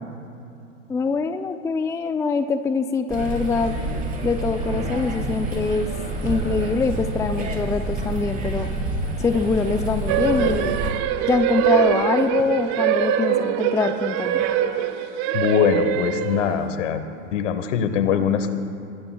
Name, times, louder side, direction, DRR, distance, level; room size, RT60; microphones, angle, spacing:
voice 1, 0.9-3.8 4.2-5.9 6.2-8.7 9.2-10.8 11.2-14.4, left 4 dB, 10° left, 9 dB, 0.5 m, -24 dB
sound 1, 3.1-10.9, right 2 dB, 20° right, 4.4 m, -28 dB
sound 2, 10.1-16.6, right 10 dB, 45° right, 1.3 m, -23 dB
voice 2, 15.3-17.0 17.3-18.5, left 7 dB, 65° left, 10 dB, 1.5 m, -22 dB
29.5 x 20.0 x 2.3 m, 2.6 s
hypercardioid pair, 95°, 40 cm